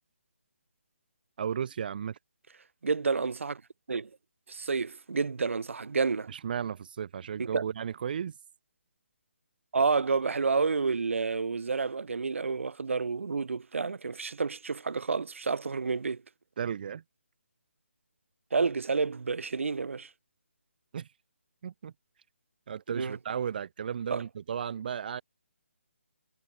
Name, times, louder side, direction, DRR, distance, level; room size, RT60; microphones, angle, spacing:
voice 1, 1.4-2.2 6.3-8.4 16.6-17.0 20.9-21.1 21.6-21.9 22.7-25.2, right 8 dB, 45° right, 7.7 m, -34 dB
voice 2, 2.8-3.6 3.9-4.1 4.5-6.3 7.4-7.6 9.7-16.2 18.5-20.1 22.9-23.2 24.1-24.2, right 4 dB, 70° right, 2.9 m, -29 dB
hypercardioid pair, 165°, 7 cm